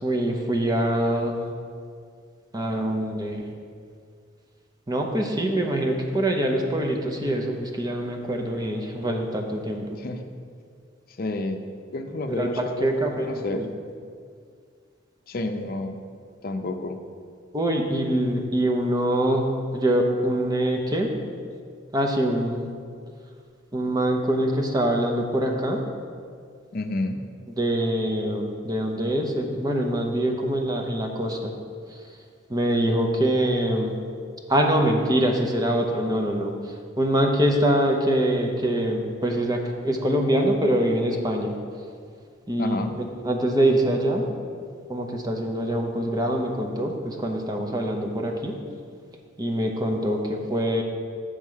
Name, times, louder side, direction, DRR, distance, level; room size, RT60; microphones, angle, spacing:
voice 1, 0.0-1.4 2.5-3.5 4.9-10.0 12.3-12.5 12.8-13.7 17.5-19.5 19.7-21.1 21.9-22.6 23.7-25.8 27.5-31.5 31.9-32.0 32.5-34.0 34.5-41.6 42.5-44.3 44.9-48.6 49.4-50.8, right 1 dB, 20° right, 2 dB, 0.7 m, -24 dB
voice 2, 11.2-11.6 11.9-12.9 13.2-13.6 15.3-16.0 16.4-17.0 26.7-27.2 42.6-42.9, left 2 dB, 50° left, 6 dB, 0.6 m, -29 dB
7.4 x 6.3 x 4.7 m, 2.1 s
head